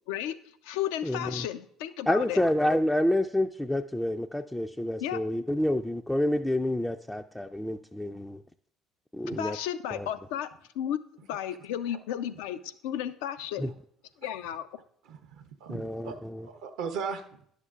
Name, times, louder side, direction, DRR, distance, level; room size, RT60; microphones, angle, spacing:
voice 1, 0.1-0.4 0.6-2.4 5.0-5.2 9.4-11.0 11.3-13.7 14.2-14.7, left 10 dB, 80° left, 11 dB, 0.4 m, -33 dB
voice 2, 1.0-1.5 2.1-8.4 9.1-9.6 9.9-10.1 13.6-13.7 15.7-16.4, left 1 dB, 10° left, 5 dB, 0.3 m, -28 dB
voice 3, 15.0-17.4, right 6 dB, 75° right, 6 dB, 0.6 m, -38 dB
11.0 x 6.6 x 2.4 m, 0.65 s
hypercardioid pair, 65°, 0 cm